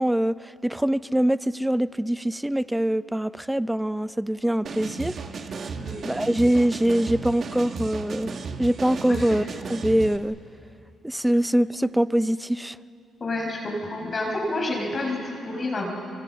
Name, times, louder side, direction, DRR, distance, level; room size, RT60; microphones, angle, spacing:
voice 1, 0.0-5.2 6.0-9.4 9.7-10.4 11.0-12.8, right 1 dB, 5° right, 16 dB, 0.5 m, -23 dB
sound 1, 4.7-10.2, right 5 dB, 50° right, 1.6 m, -35 dB
voice 2, 9.0-9.4 13.2-15.9, left 2 dB, 35° left, 0 dB, 5.2 m, -29 dB
26.5 x 24.5 x 7.4 m, 2.6 s
cardioid pair, 90°, 0 cm